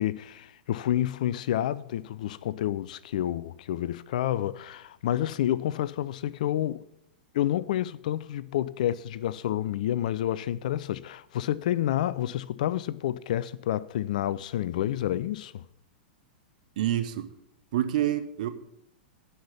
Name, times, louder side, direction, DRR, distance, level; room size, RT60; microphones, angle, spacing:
voice 1, 0.0-6.8 7.3-15.6, left 12 dB, 50° left, 0.4 m, -29 dB
voice 2, 16.8-17.3 17.7-18.5, right 12 dB, 50° right, 0.9 m, -27 dB
10.0 x 5.8 x 8.1 m
figure-of-eight pair, 100°, 5 cm